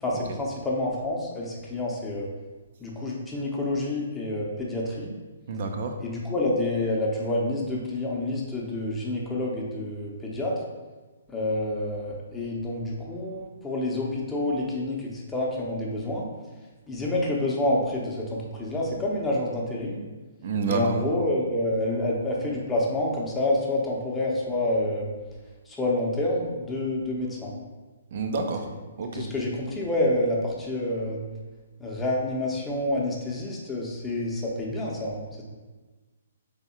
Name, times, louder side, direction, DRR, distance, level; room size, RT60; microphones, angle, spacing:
voice 1, 0.0-2.3 2.8-5.1 6.0-10.5 11.3-16.3 16.9-20.0 20.7-25.1 25.7-27.5 29.0-31.2 31.8-35.4, left 1 dB, 10° left, -4 dB, 0.8 m, -28 dB
voice 2, 5.5-5.9 20.4-21.0 28.1-28.7 29.0-29.3, right 4 dB, 55° right, 5 dB, 0.6 m, -28 dB
3.6 x 3.5 x 4.3 m, 1.3 s
hypercardioid pair, 145°, 0 cm